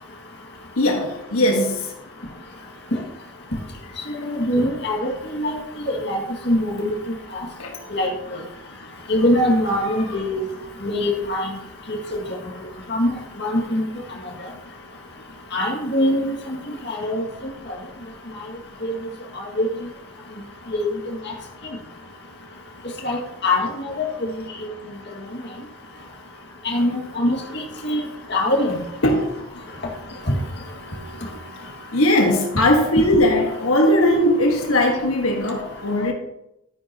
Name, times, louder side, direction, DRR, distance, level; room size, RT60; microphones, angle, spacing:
voice 1, 0.8-1.7 7.6-7.7 10.1-10.2 29.0-29.3 31.9-36.1, left 1 dB, 85° left, 1.6 m, -19 dB
voice 2, 4.1-5.6 5.8-6.9 7.9-8.1 9.1-10.4 10.8-11.5 12.9-13.1 13.4-13.8 15.5-16.3 16.9-17.2 19.6-19.7 20.7-20.9 23.0-24.1 26.6-28.0 28.3-28.8, left 1 dB, 50° left, 2.1 m, -22 dB
12.5 x 10.0 x 3.0 m
head